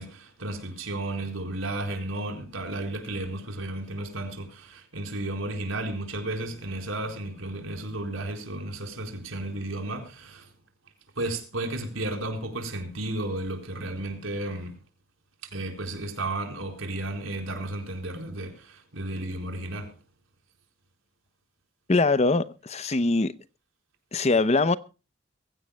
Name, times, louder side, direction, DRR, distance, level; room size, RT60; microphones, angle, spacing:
voice 1, 0.0-10.5 11.2-14.8 15.5-19.9, right 1 dB, 85° right, 4.3 m, -33 dB
voice 2, 21.9-23.3 24.1-24.8, left 3 dB, 35° left, 0.7 m, -22 dB
23.0 x 15.5 x 2.2 m
head